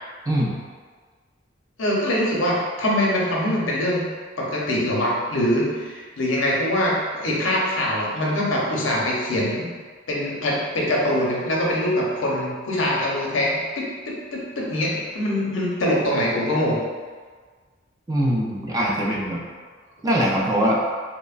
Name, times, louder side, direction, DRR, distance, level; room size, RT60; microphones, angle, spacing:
voice 1, 0.3-0.6 18.1-19.4 20.0-20.8, equal, 20° right, -4 dB, 0.3 m, -22 dB
voice 2, 1.8-4.0 4.4-9.7 10.1-16.8, left 1 dB, 85° left, -4 dB, 0.6 m, -23 dB
3.0 x 2.1 x 2.3 m, 1.5 s
head